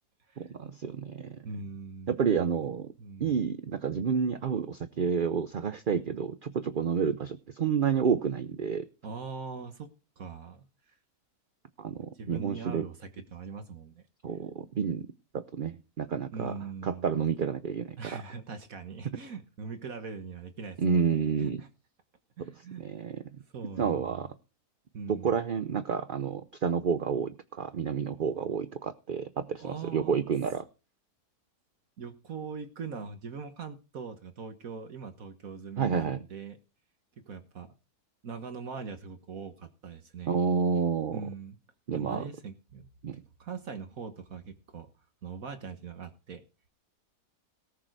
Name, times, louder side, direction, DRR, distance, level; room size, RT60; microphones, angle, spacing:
voice 1, 0.4-1.4 2.1-2.9 3.2-8.9 11.8-12.8 14.2-15.1 15.3-16.5 16.8-18.0 20.8-21.6 22.8-23.2 23.8-24.3 25.1-30.6 35.8-36.2 40.3-41.2 41.9-42.2 43.0-43.2, right 6 dB, 45° right, 11 dB, 0.7 m, -29 dB
voice 2, 1.4-2.5 3.0-3.3 9.0-9.9 10.2-11.0 12.1-14.0 16.3-17.1 18.0-21.7 22.4-22.8 23.5-24.3 24.9-25.3 29.6-30.3 32.0-36.6 37.3-37.7 38.2-40.4 41.1-41.6 41.9-44.9 45.2-46.4, right 5 dB, 65° right, 7 dB, 1.7 m, -41 dB
18.0 x 6.6 x 4.6 m, 0.34 s
omnidirectional pair, 1.6 m